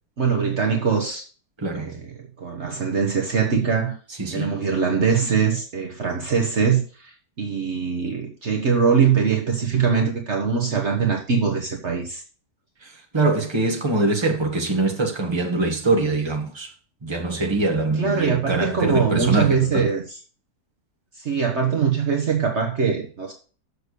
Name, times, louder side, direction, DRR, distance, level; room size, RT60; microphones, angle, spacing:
voice 1, 0.2-1.2 1.7-4.0 4.3-12.2 18.0-20.2 21.1-23.3, right 6 dB, 50° right, 1.3 m, -22 dB
voice 2, 1.6-1.9 4.2-4.5 13.1-16.7 17.0-19.8, right 2 dB, 20° right, 1.5 m, -23 dB
6.8 x 6.7 x 6.5 m
omnidirectional pair, 1.6 m